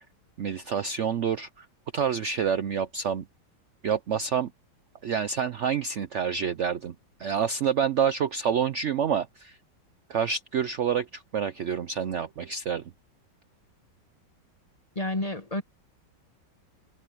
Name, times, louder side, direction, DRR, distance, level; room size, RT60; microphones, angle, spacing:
voice 1, 0.4-1.7 1.9-3.2 3.8-4.5 5.0-6.9 7.2-9.6 10.1-12.8, right 7 dB, 80° right, 0.6 m, -28 dB
voice 2, 14.9-15.6, left 2 dB, 25° left, 1.1 m, -30 dB
omnidirectional pair, 2.1 m